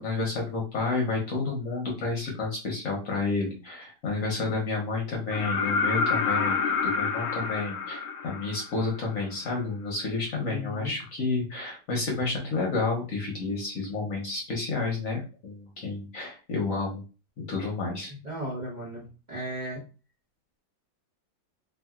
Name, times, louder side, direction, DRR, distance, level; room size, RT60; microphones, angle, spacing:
voice 1, 0.0-17.0 17.5-18.1, left 3 dB, 55° left, 0 dB, 1.0 m, -30 dB
sound 1, 5.3-9.1 11.0-11.1, left 5 dB, 85° left, 0.7 m, -28 dB
voice 2, 10.5-10.9 18.1-19.0 19.3-19.8, equal, 40° right, -5 dB, 0.7 m, -35 dB
3.0 x 2.7 x 2.4 m, 0.32 s
omnidirectional pair, 2.0 m